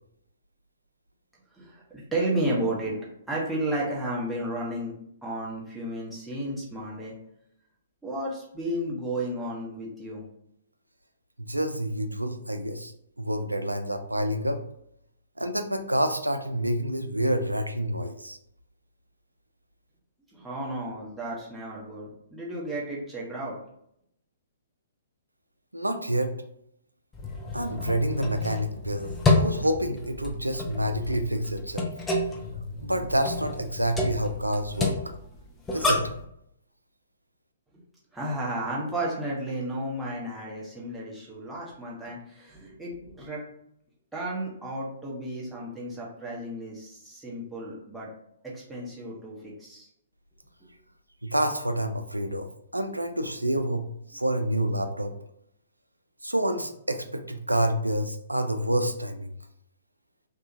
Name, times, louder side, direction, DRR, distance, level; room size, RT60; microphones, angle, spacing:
voice 1, 1.6-4.9 5.2-7.1 8.0-10.2 20.3-23.6 38.1-43.4 44.1-48.1 48.5-49.9 50.6-50.7, right 1 dB, 5° right, -7 dB, 0.8 m, -33 dB
voice 2, 11.4-12.9 13.2-14.6 15.4-18.4 25.7-26.3 27.5-29.1 29.4-31.9 32.8-35.0 35.7-36.1 51.2-52.5 52.7-55.1 56.2-59.3, right 1 dB, 85° right, 7 dB, 0.3 m, -28 dB
sound 1, 27.1-36.2, left 2 dB, 10° left, 0.4 m, -29 dB
2.7 x 2.2 x 2.6 m, 0.73 s
figure-of-eight pair, 120°, 0 cm